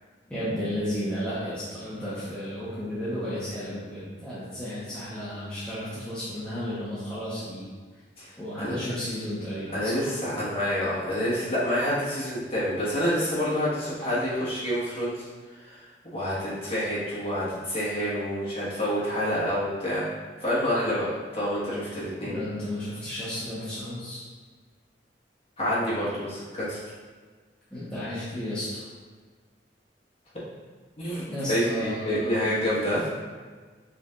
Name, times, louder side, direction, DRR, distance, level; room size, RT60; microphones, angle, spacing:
voice 1, 0.3-7.7 8.4-10.1 22.2-24.2 27.7-28.9 31.3-32.7, equal, 5° left, -12 dB, 0.9 m, -33 dB
voice 2, 9.7-15.2 15.6-15.8 16.1-20.0 20.4-22.3 25.6-26.8 31.0-31.2 31.5-33.0, equal, 35° left, -9 dB, 1.5 m, -28 dB
5.0 x 3.3 x 2.5 m, 1.5 s
head